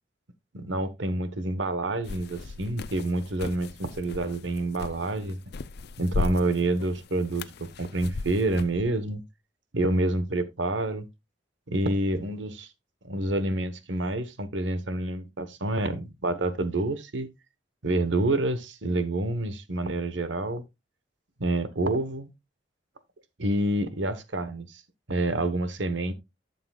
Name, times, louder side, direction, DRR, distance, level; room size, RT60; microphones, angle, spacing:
voice 1, 0.5-5.4 6.0-9.2 9.7-11.1 11.7-12.7 13.0-17.3 17.8-20.6 21.4-22.3 23.4-24.8 25.1-26.1, right 2 dB, 85° right, 1.2 m, -28 dB
sound 1, 2.0-8.8, left 3 dB, 60° left, 0.5 m, -37 dB
11.5 x 7.0 x 2.4 m
head